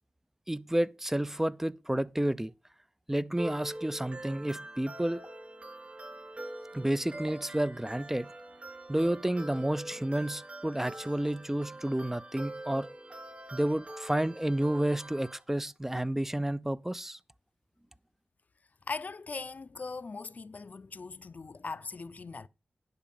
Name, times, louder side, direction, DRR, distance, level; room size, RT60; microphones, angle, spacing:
voice 1, 0.5-2.5 3.1-5.2 6.7-8.3 8.9-12.9 13.5-17.2, right 1 dB, 10° right, 0.4 m, -30 dB
sound 1, 3.4-15.4, right 1 dB, 40° right, 3.8 m, -44 dB
voice 2, 18.9-22.5, left 4 dB, 50° left, 0.5 m, -40 dB
10.5 x 4.8 x 6.9 m
cardioid pair, 55°, 3 cm